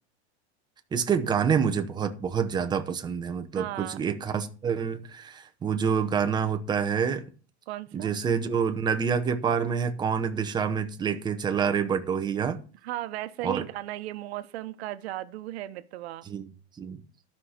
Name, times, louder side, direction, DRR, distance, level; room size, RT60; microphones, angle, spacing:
voice 1, 0.9-7.2 7.9-12.6 13.4-13.6 16.3-16.5 16.8-17.0, right 6 dB, 10° right, 0.8 m, -27 dB
voice 2, 3.5-4.0 7.7-8.1 12.8-16.3, right 15 dB, 65° right, 1.0 m, -36 dB
12.5 x 5.8 x 6.5 m
supercardioid pair, 160°, 34 cm